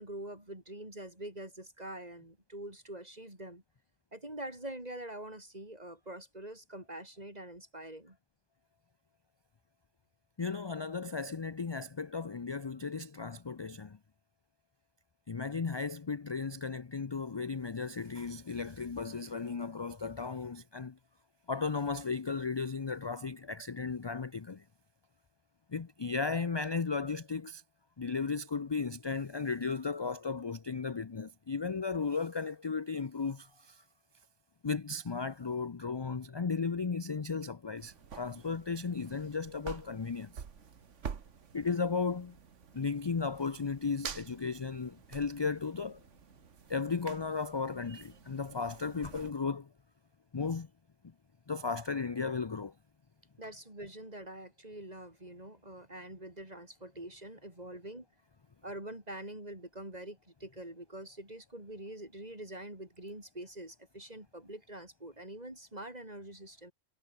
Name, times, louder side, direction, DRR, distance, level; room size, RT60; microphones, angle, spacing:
voice 1, 0.0-3.6 4.1-8.2 53.4-58.1 58.6-66.7, right 1 dB, 35° right, 5.6 m, -45 dB
voice 2, 10.4-14.0 15.3-21.0 21.5-24.6 25.7-27.6 28.0-33.8 34.6-40.4 41.5-42.4 42.7-46.0 46.7-49.7 50.3-50.7 51.5-52.7, left 4 dB, 30° left, 0.5 m, -35 dB
sound 1, 37.8-49.3, right 6 dB, 80° right, 1.7 m, -48 dB
omnidirectional pair, 1.2 m